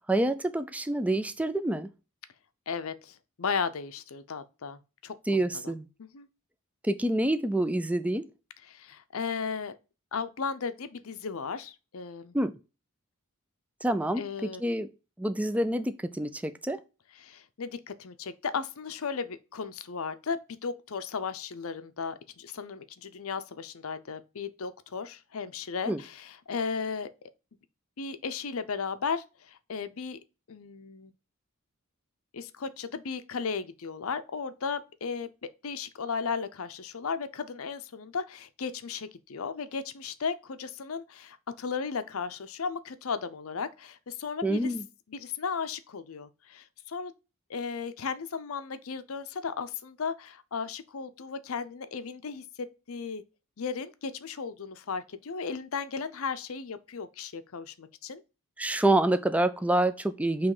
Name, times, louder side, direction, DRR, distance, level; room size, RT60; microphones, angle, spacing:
voice 1, 0.1-1.9 5.3-5.9 6.8-8.2 12.3-12.5 13.8-14.9 15.2-16.8 25.9-26.0 44.4-44.8 58.6-60.5, right 1 dB, 5° right, 0.4 m, -27 dB
voice 2, 2.7-5.7 6.0-6.3 8.6-9.8 10.1-12.3 14.2-14.6 17.2-27.1 28.0-30.2 30.5-31.1 32.3-35.3 35.6-44.7 45.1-47.1 47.5-53.2 53.6-58.2 58.7-58.8, left 5 dB, 65° left, 0.6 m, -35 dB
7.3 x 3.1 x 4.9 m
head